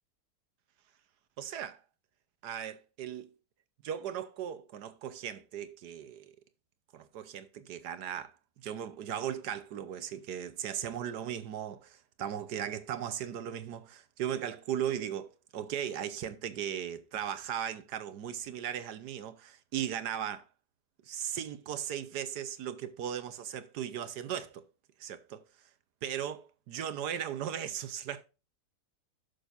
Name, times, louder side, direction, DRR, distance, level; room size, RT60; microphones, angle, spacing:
voice 1, 1.4-1.8 2.4-3.3 3.8-6.3 6.9-20.4 21.1-24.6 25.0-25.4 26.0-28.2, right 9 dB, 75° right, 1.4 m, -37 dB
11.5 x 6.5 x 2.5 m
omnidirectional pair, 1.8 m